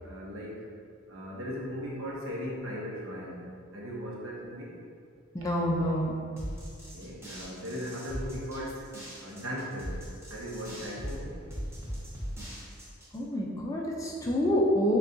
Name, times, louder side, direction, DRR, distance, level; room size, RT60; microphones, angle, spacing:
voice 1, 0.0-0.7 1.1-4.8 6.9-8.9 9.2-11.4, equal, 65° right, -4 dB, 0.8 m, -38 dB
voice 2, 5.3-6.1 13.1-15.0, equal, 15° left, -3 dB, 0.3 m, -27 dB
sound 1, 6.4-13.2, equal, 10° right, 0.7 m, -40 dB
6.3 x 2.3 x 2.6 m, 2.3 s
head